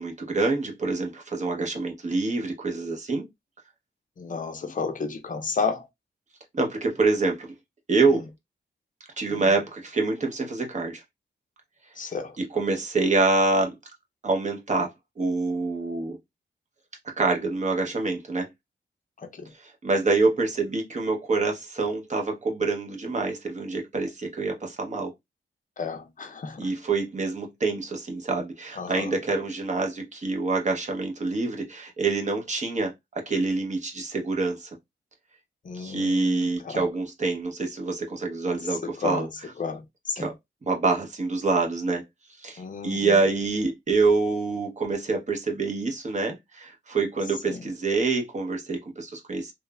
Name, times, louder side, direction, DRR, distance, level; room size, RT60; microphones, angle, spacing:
voice 1, 0.0-3.3 6.5-7.5 7.9-8.3 9.2-11.0 12.4-13.7 14.2-14.9 15.2-16.2 17.2-18.5 19.6-25.1 26.6-32.9 33.3-34.7 35.7-39.5 40.2-40.3 40.7-42.0 42.4-49.5, right 3 dB, 40° right, 0.8 m, -26 dB
voice 2, 4.2-5.9 12.0-12.3 19.2-19.5 25.8-26.6 28.8-29.1 35.7-36.8 39.0-39.2 39.6-39.8 40.1-40.3 42.6-43.0 47.5-47.6, left 5 dB, 45° left, 0.5 m, -31 dB
3.1 x 2.0 x 2.2 m
wide cardioid pair, 95°, 19 cm